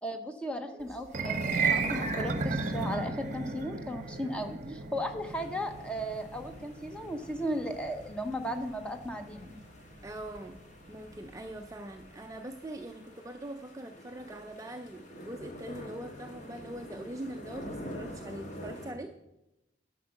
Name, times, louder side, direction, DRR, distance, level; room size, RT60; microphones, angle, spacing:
voice 1, 0.0-4.6 4.9-9.6, equal, 5° left, 6 dB, 0.8 m, -36 dB
sound 1, 1.0-11.4, right 4 dB, 40° right, 0.9 m, -35 dB
sound 2, 5.2-18.9, equal, 40° left, 1.4 m, -48 dB
voice 2, 10.0-10.6 10.9-19.2, right 1 dB, 20° right, 5 dB, 0.4 m, -42 dB
9.9 x 6.0 x 6.4 m, 0.92 s
head